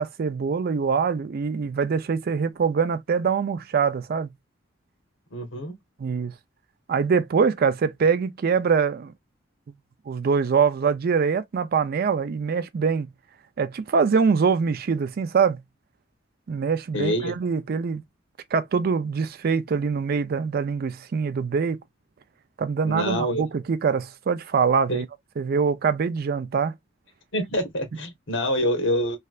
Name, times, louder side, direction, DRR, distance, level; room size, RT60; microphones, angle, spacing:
voice 1, 0.0-4.3 6.0-6.3 6.9-9.1 10.1-13.1 13.6-15.6 16.5-18.0 18.5-21.8 22.6-25.0 25.4-26.7, right 5 dB, 50° right, 0.4 m, -24 dB
voice 2, 5.3-5.7 16.9-17.3 22.9-23.4 24.9-25.0 27.3-29.2, equal, 70° left, 1.2 m, -26 dB
3.2 x 2.7 x 2.3 m
head